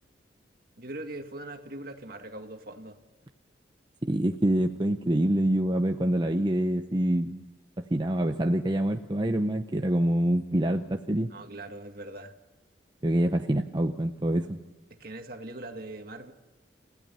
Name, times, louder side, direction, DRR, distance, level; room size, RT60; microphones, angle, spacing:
voice 1, 0.8-3.0 11.3-12.3 14.9-16.3, right 2 dB, 55° right, 5 dB, 2.0 m, -41 dB
voice 2, 4.1-7.4 7.9-11.3 13.0-14.6, right 1 dB, 25° right, 5 dB, 0.7 m, -26 dB
30.0 x 15.5 x 5.6 m, 1.2 s
head